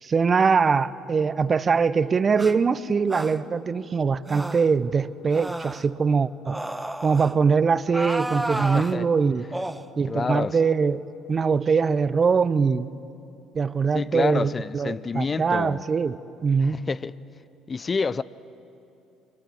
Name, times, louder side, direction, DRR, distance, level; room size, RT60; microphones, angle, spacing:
voice 1, 0.0-6.6 7.0-9.4 10.0-12.9 13.5-16.2 16.4-16.8, right 5 dB, 35° right, 0.8 m, -22 dB
sound 1, 2.4-2.5 3.1-3.4 4.3-4.7 5.3-5.9 6.5-7.3 7.9-8.9 9.5-9.8, right 1 dB, 10° right, 1.1 m, -31 dB
voice 2, 8.5-9.1 9.4-9.6 10.1-10.6 13.9-15.8 16.6-17.1 17.7-18.2, left 4 dB, 35° left, 0.6 m, -28 dB
26.0 x 23.5 x 7.7 m
hypercardioid pair, 55°, 0 cm